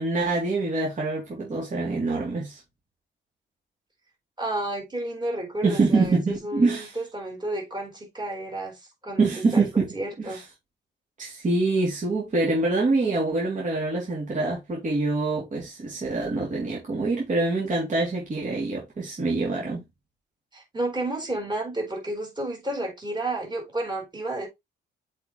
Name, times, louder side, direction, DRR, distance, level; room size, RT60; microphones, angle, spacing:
voice 1, 0.0-2.6 5.6-7.0 9.2-9.9 10.2-10.4 11.2-19.8, right 3 dB, 40° right, 3.1 m, -25 dB
voice 2, 4.4-10.4 20.5-24.5, right 1 dB, 20° right, 4.3 m, -31 dB
7.7 x 4.8 x 3.2 m
cardioid pair, 90°, 20 cm